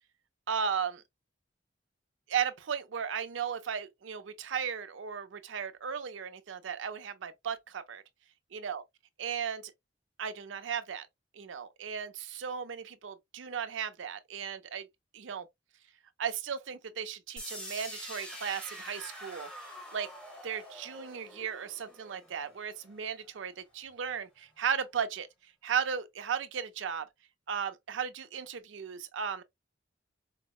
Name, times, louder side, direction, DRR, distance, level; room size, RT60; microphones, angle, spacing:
voice 1, 0.5-1.0 2.3-8.0 8.6-8.8 9.2-9.7 10.2-11.1 11.3-14.9 15.1-15.5 16.2-19.5 19.9-20.1 20.4-25.3 25.6-27.1 27.5-29.4, right 7 dB, 90° right, 0.5 m, -35 dB
sound 1, 17.4-23.3, equal, 5° left, 0.8 m, -46 dB
4.5 x 2.0 x 2.3 m
head